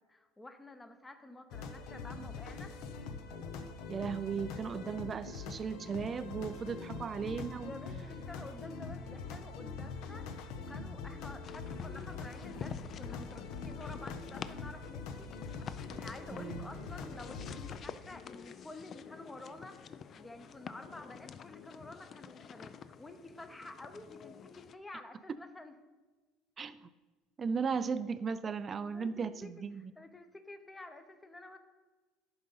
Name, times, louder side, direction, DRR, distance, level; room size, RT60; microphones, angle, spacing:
voice 1, 0.1-2.8 7.6-15.6 16.0-25.7 28.9-29.5 29.7-31.6, left 2 dB, 10° left, 8 dB, 0.7 m, -50 dB
sound 1, 1.5-17.8, left 4 dB, 70° left, 0.7 m, -43 dB
voice 2, 3.9-7.7 16.3-16.7 26.6-26.9 27.4-29.9, right 6 dB, 30° right, 13 dB, 0.3 m, -36 dB
sound 2, 11.4-24.8, left 7 dB, 40° left, 0.4 m, -49 dB
11.0 x 3.9 x 5.5 m, 1.3 s
cardioid pair, 120°, 0 cm